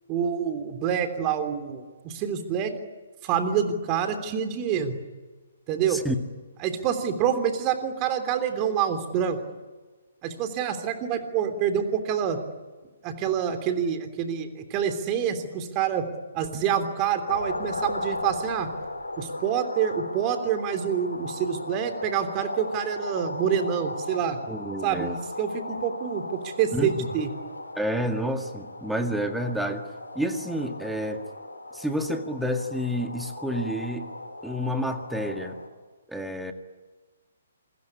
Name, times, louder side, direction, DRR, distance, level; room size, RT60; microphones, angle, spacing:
voice 1, 0.1-2.7 3.2-4.9 5.7-6.0 6.6-9.4 10.2-12.4 13.0-16.1 16.3-18.7 19.2-24.4 24.8-27.3, right 8 dB, 25° right, 8 dB, 3.3 m, -27 dB
sound 1, 17.3-35.7, left 2 dB, 80° left, 4.1 m, -37 dB
voice 2, 24.5-25.2 26.7-27.1 27.8-29.8 30.2-31.2 31.7-34.1 34.4-35.6 36.1-36.5, equal, ahead, 6 dB, 1.9 m, -29 dB
28.0 x 21.5 x 9.9 m, 1.3 s
figure-of-eight pair, 130°, 0 cm